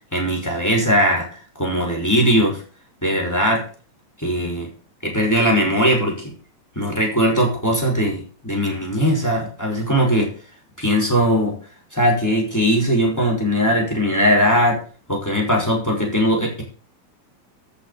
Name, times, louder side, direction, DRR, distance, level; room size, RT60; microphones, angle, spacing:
voice 1, 0.1-2.6 3.0-3.6 4.2-4.7 5.0-6.3 6.8-10.3 10.8-11.6 11.9-14.8 15.1-16.6, equal, 5° left, -1 dB, 5.9 m, -19 dB
14.0 x 7.4 x 7.1 m, 0.38 s
omnidirectional pair, 3.4 m